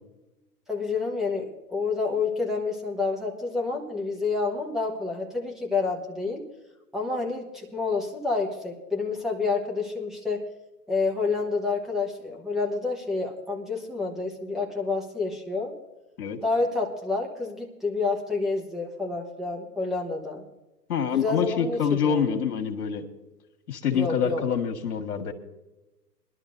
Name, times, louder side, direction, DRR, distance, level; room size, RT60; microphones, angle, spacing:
voice 1, 0.7-6.4 6.9-10.4 10.9-15.7 16.4-20.4 21.1-22.3 23.9-24.4, left 4 dB, ahead, -1 dB, 1.0 m, -29 dB
voice 2, 20.9-23.0 23.7-25.3, left 7 dB, 65° left, 6 dB, 1.9 m, -26 dB
22.5 x 12.0 x 2.6 m, 1.0 s
hypercardioid pair, 135°, 47 cm